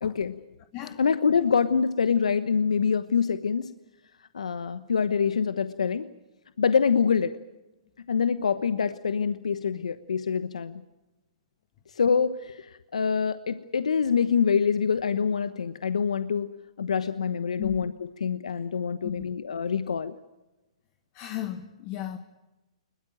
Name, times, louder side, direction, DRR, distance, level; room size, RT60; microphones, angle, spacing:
voice 1, 0.0-0.3 1.0-3.7 4.3-6.1 6.6-7.4 8.1-10.8 12.0-12.6 12.9-16.5 16.8-17.9 18.2-20.1, left 6 dB, 80° left, 12 dB, 1.1 m, -25 dB
voice 2, 21.1-22.2, left 13 dB, 35° left, 7 dB, 1.7 m, -35 dB
21.5 x 21.5 x 9.0 m, 1.0 s
hypercardioid pair, 130°, 4 cm